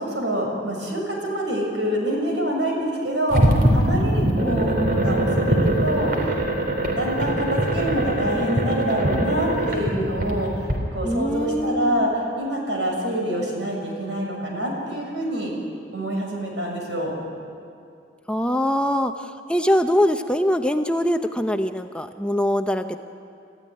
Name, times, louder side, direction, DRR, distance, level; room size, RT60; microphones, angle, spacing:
voice 1, 0.0-6.3 6.9-10.7 10.9-15.5 15.9-17.1, right 1 dB, 75° right, 0 dB, 6.5 m, -26 dB
sound 1, 3.3-10.7, right 1 dB, 55° right, 3.7 m, -22 dB
voice 2, 4.4-4.9 11.0-12.1 18.3-23.0, equal, 5° left, 6 dB, 0.6 m, -23 dB
27.5 x 14.5 x 9.9 m, 2.4 s
head